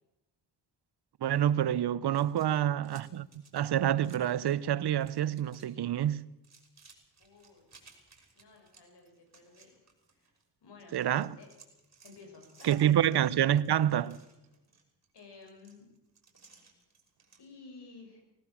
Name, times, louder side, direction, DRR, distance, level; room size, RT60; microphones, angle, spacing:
voice 1, 1.2-3.3 3.5-6.2 10.9-11.4 12.6-14.2, right 11 dB, 70° right, 0.8 m, -27 dB
sound 1, 2.1-4.6 4.9-5.7 6.0-10.4 10.8-17.4, right 4 dB, 40° right, 5.8 m, -60 dB
voice 2, 2.4-2.7 7.2-7.7 8.3-9.8 10.1-10.3 10.6-11.0 11.4-11.5 12.0-13.0 15.1-15.9 17.4-18.2, left 4 dB, 75° left, 7.0 m, -54 dB
20.5 x 17.5 x 7.2 m
cardioid pair, 90°, 41 cm